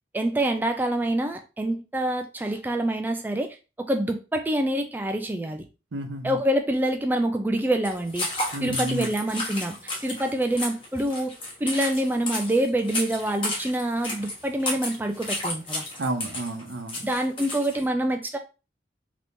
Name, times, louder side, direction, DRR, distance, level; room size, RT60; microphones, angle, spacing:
voice 1, 0.1-5.6 6.2-8.3 8.6-9.8 10.0-11.3 11.6-15.8 17.0-18.4, right 1 dB, 10° right, 0.3 m, -26 dB
voice 2, 5.9-6.4 8.5-9.1 16.0-17.0, right 1 dB, 85° right, 0.6 m, -31 dB
sound 1, 7.8-17.9, left 1 dB, 30° left, 1.0 m, -32 dB
3.5 x 2.9 x 2.6 m
head